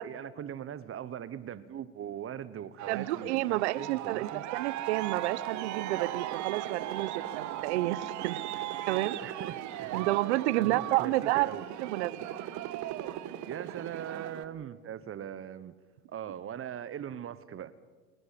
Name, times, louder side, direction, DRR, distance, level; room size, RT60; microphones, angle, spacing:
voice 1, 0.0-4.4 9.2-10.1 10.5-11.7 13.5-15.7 16.1-17.7, right 10 dB, 40° right, 1.2 m, -40 dB
Aircraft, 2.8-14.4, right 13 dB, 60° right, 1.6 m, -38 dB
voice 2, 2.9-8.4 8.9-9.2 9.9-11.5 11.8-12.1, right 17 dB, 80° right, 0.9 m, -30 dB
29.5 x 11.0 x 8.5 m
hypercardioid pair, 80°, 33 cm